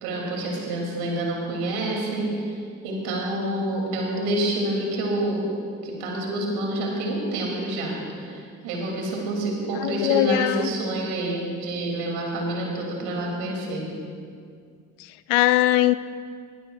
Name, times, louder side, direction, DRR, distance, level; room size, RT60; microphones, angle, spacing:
voice 1, 0.0-5.5 5.8-13.9, right 1 dB, 65° right, -1 dB, 2.8 m, -28 dB
voice 2, 9.8-10.7 15.0-15.9, left 16 dB, 65° left, 16 dB, 0.5 m, -21 dB
19.5 x 11.5 x 2.4 m, 2.3 s
figure-of-eight pair, 50°, 41 cm